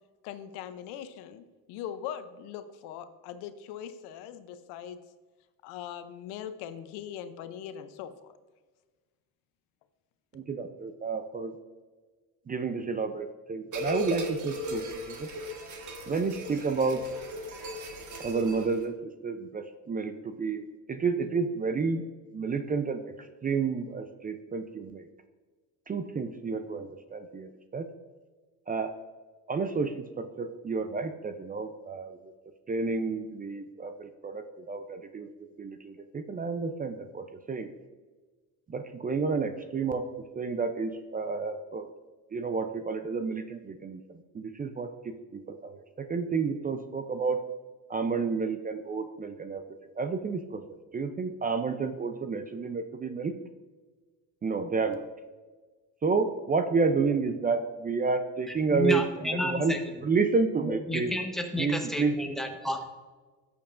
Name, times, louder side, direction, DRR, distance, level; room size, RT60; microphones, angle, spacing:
voice 1, 0.2-5.0 5.6-8.4, left 9 dB, 85° left, 11 dB, 0.7 m, -41 dB
voice 2, 10.3-11.5 12.5-15.3 16.1-17.0 18.2-18.9 19.2-20.6 20.9-22.0 22.3-25.1 25.9-27.9 28.7-28.9 29.5-32.2 32.7-35.3 35.6-37.8 38.7-40.0 40.4-41.9 42.3-47.4 47.9-49.6 49.9-53.3 54.4-55.1 56.0-59.0 59.4-59.7 60.0-61.1 61.6-62.1, right 4 dB, 25° right, 9 dB, 0.5 m, -30 dB
sound 1, 13.7-18.8, left 1 dB, 50° right, 1.5 m, -37 dB
voice 3, 58.5-59.8 60.6-62.9, left 1 dB, ahead, 3 dB, 1.1 m, -31 dB
12.5 x 7.1 x 2.5 m, 1.3 s
cardioid pair, 105°, 38 cm